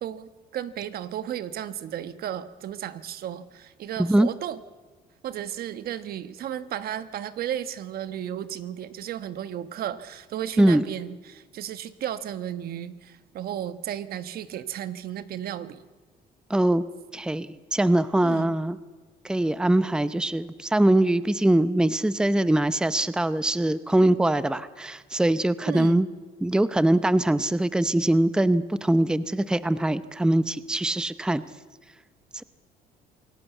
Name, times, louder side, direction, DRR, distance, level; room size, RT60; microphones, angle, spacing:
voice 1, 0.0-4.6 5.2-15.8 18.2-18.6 25.7-26.1, right 10 dB, 65° right, 12 dB, 1.3 m, -34 dB
voice 2, 16.5-16.8 17.1-17.5 17.7-18.8 19.2-26.1 26.4-31.4, right 1 dB, 5° right, 14 dB, 0.7 m, -22 dB
27.5 x 18.0 x 8.2 m, 1.4 s
cardioid pair, 110°, 17 cm